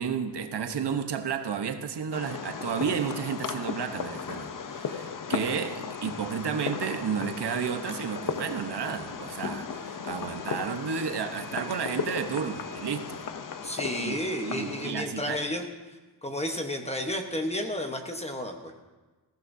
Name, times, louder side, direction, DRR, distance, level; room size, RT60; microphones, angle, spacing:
voice 1, 0.0-13.3 13.8-15.4, right 7 dB, 75° right, 6 dB, 1.0 m, -32 dB
Fireworks, 2.1-14.9, left 6 dB, 50° left, 0.7 m, -36 dB
voice 2, 13.6-15.6 16.2-18.7, left 1 dB, 15° left, 4 dB, 1.0 m, -32 dB
20.0 x 15.5 x 2.7 m, 1.2 s
wide cardioid pair, 170°, 41 cm